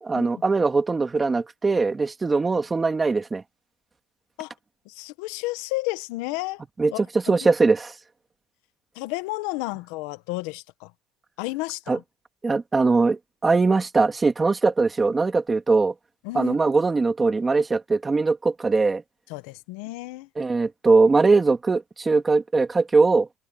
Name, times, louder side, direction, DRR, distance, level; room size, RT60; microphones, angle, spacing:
voice 1, 0.0-3.4 6.8-7.9 11.9-12.0 12.4-15.9 16.3-19.0 20.4-23.3, right 3 dB, 15° right, 2.1 m, -21 dB
voice 2, 4.9-6.6 6.9-7.0 7.3-7.4 9.0-10.9 11.4-12.0 16.2-16.6 19.3-20.3, left 21 dB, 90° left, 1.1 m, -32 dB
cardioid pair, 155°, 0 cm